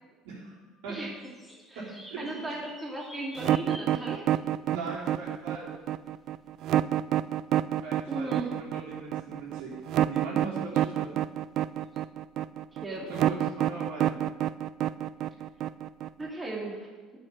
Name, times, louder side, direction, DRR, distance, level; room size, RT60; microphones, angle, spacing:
voice 1, 0.2-0.6 0.8-1.0 1.7-2.5 4.7-5.7 7.6-11.2 13.0-14.2, right 4 dB, 75° right, -5 dB, 4.3 m, -39 dB
sound 1, 1.2-4.3 5.6-5.7 10.9-11.0 11.9-12.0, equal, 5° right, 2.7 m, -48 dB
voice 2, 2.2-4.4 8.1-8.5 12.7-13.1 16.2-16.9, right 2 dB, 20° right, -2 dB, 2.6 m, -36 dB
sound 2, 3.4-16.3, right 12 dB, 60° right, 0.4 m, -27 dB
9.6 x 6.8 x 7.5 m, 1.3 s
hypercardioid pair, 75°, 0 cm